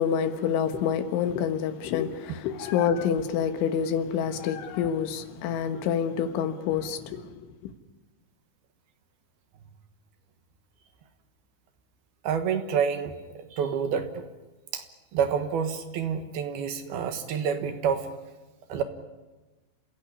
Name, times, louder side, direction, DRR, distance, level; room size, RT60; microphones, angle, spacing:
voice 1, 0.0-7.3, left 8 dB, 85° left, 3.8 m, -27 dB
voice 2, 12.2-14.1 14.7-14.8 15.1-18.1 18.7-18.8, right 7 dB, 65° right, 3.0 m, -28 dB
29.5 x 16.5 x 9.8 m
omnidirectional pair, 5.3 m